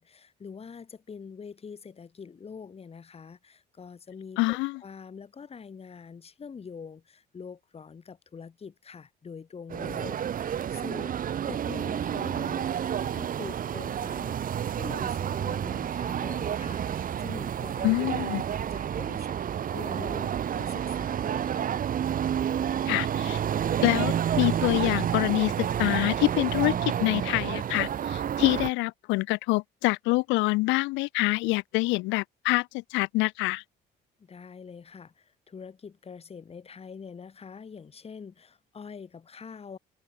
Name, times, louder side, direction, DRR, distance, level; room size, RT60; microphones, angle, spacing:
voice 1, 0.0-11.2 11.5-14.4 14.6-18.1 18.5-19.4 19.6-21.7 34.2-39.8, left 6 dB, 30° left, 3.5 m, -44 dB
voice 2, 4.4-4.8 17.8-18.4 22.9-23.4 23.8-33.6, left 23 dB, 85° left, 0.5 m, -26 dB
sound 1, 9.7-28.7, right 9 dB, 50° right, 2.2 m, -30 dB
cardioid pair, 105°, 19 cm